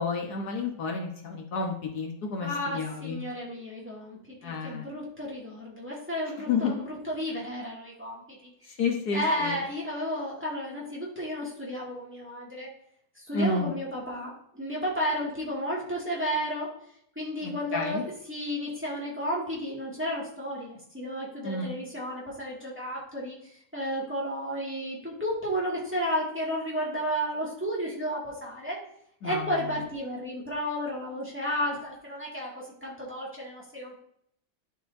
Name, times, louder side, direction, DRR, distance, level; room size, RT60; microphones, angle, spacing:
voice 1, 0.0-3.2 4.4-4.9 6.5-6.7 8.7-9.6 13.3-13.7 17.4-18.0 21.4-21.8 29.2-29.7, left 4 dB, 70° left, 1 dB, 1.5 m, -31 dB
voice 2, 2.4-8.8 9.1-12.7 13.2-16.7 17.2-23.3 23.7-28.8 29.2-33.9, equal, 5° right, -6 dB, 1.9 m, -32 dB
11.5 x 4.4 x 2.6 m, 0.70 s
omnidirectional pair, 1.8 m